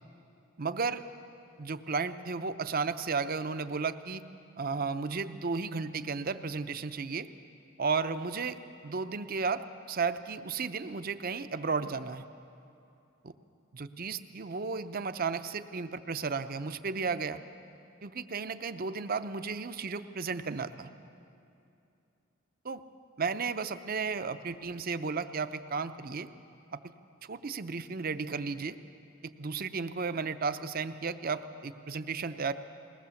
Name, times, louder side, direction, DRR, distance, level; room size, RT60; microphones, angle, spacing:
voice 1, 0.6-1.0 1.6-4.2 4.6-7.3 7.8-8.6 8.8-12.2 13.2-13.3 13.7-17.4 18.0-20.9 22.6-22.8 23.2-26.3 26.7-26.8 27.2-28.8 29.2-32.5, right 4 dB, 45° right, 11 dB, 0.7 m, -34 dB
21.0 x 19.0 x 7.1 m, 2.7 s
head